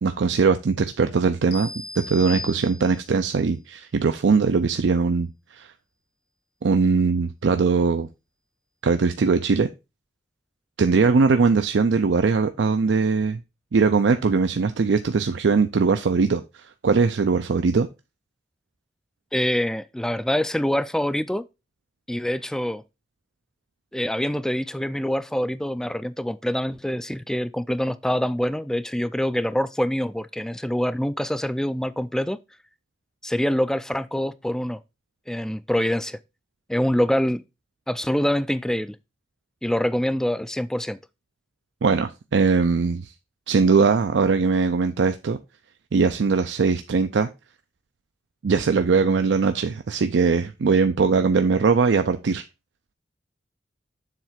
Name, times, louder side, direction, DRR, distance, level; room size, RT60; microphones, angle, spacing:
voice 1, 0.0-5.7 6.6-8.1 8.8-9.7 10.8-13.4 13.7-17.9 41.8-43.1 43.5-45.4 45.9-47.3 48.4-52.4, right 4 dB, 75° right, 0.5 m, -21 dB
sound 1, 1.5-3.2, left 3 dB, 55° left, 1.1 m, -36 dB
voice 2, 19.3-21.5 22.1-22.8 23.9-32.4 33.2-34.8 35.3-36.2 36.7-37.4 37.9-39.0 39.6-41.0, equal, 5° left, 0.3 m, -25 dB
7.4 x 3.2 x 5.8 m
head